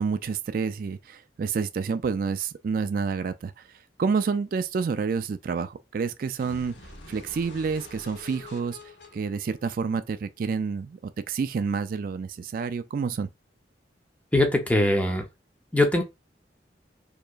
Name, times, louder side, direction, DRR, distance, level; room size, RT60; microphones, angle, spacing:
voice 1, 0.0-3.5 4.0-6.7 7.1-8.8 9.1-13.3, right 5 dB, 50° right, 0.3 m, -28 dB
sound 1, 6.4-10.4, left 2 dB, 75° left, 1.1 m, -47 dB
voice 2, 14.3-15.3 15.7-16.0, left 1 dB, 10° left, 0.7 m, -21 dB
4.4 x 2.9 x 2.4 m
head